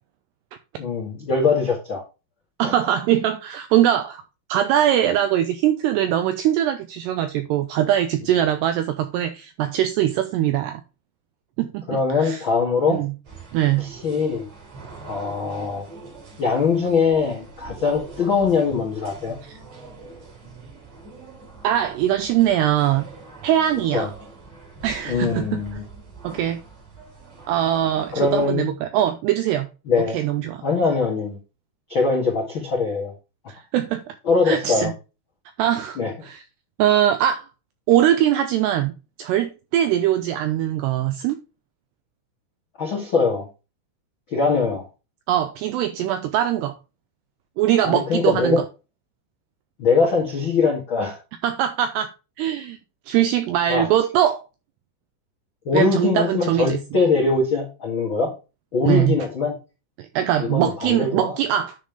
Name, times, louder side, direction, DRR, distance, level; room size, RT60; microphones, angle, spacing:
voice 1, 0.8-2.0 2.6-2.7 11.9-13.0 13.8-14.4 15.0-15.8 16.4-19.4 23.9-24.1 25.1-25.8 28.1-28.7 29.9-30.2 30.6-31.4 31.9-33.1 34.2-34.9 36.0-36.1 42.8-43.5 44.3-44.8 47.8-48.6 49.8-51.2 53.7-53.9 55.6-58.3 58.7-59.5 60.4-61.4, left 4 dB, 65° left, 1.2 m, -22 dB
voice 2, 2.6-4.2 4.5-10.8 11.6-12.4 12.9-13.1 13.5-13.9 21.6-23.1 23.4-24.1 24.8-25.6 26.2-26.6 27.5-29.7 30.1-30.6 33.5-34.0 34.5-34.9 35.6-36.4 36.8-37.5 37.9-38.9 39.2-41.4 45.3-46.8 47.6-48.6 51.4-52.1 52.4-52.8 53.1-54.4 55.7-56.8 58.8-59.2 60.0-61.8, right 11 dB, 85° right, 2.4 m, -21 dB
sound 1, 13.2-28.5, right 3 dB, 40° right, 4.9 m, -43 dB
10.0 x 5.5 x 3.3 m
omnidirectional pair, 5.5 m